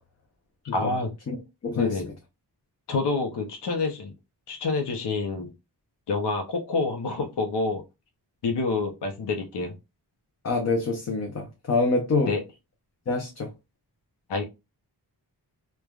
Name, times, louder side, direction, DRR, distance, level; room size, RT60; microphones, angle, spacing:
voice 1, 0.7-1.1 1.7-2.1 2.9-4.1 4.5-5.5 6.1-7.8 8.4-9.7 12.3-12.4 14.3-14.4, left 3 dB, 85° left, 0.7 m, -27 dB
voice 2, 1.6-1.9 10.4-12.3 13.1-13.5, left 3 dB, 40° left, 0.6 m, -26 dB
3.2 x 2.2 x 2.3 m
wide cardioid pair, 130°, 41 cm